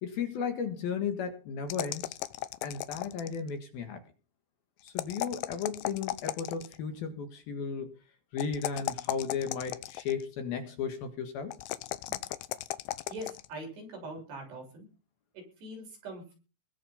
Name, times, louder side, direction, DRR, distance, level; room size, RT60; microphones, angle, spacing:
voice 1, 0.0-2.2 2.6-4.0 4.8-7.9 8.3-11.5, left 6 dB, 60° left, 7 dB, 3.2 m, -35 dB
sound 1, 1.7-3.5 4.9-6.8 8.4-10.2 11.5-13.5, left 15 dB, 80° left, 3.0 m, -36 dB
voice 2, 13.1-14.9 15.3-16.3, right 1 dB, 65° right, 1 dB, 9.0 m, -42 dB
21.0 x 7.1 x 5.7 m, 0.33 s
omnidirectional pair, 5.3 m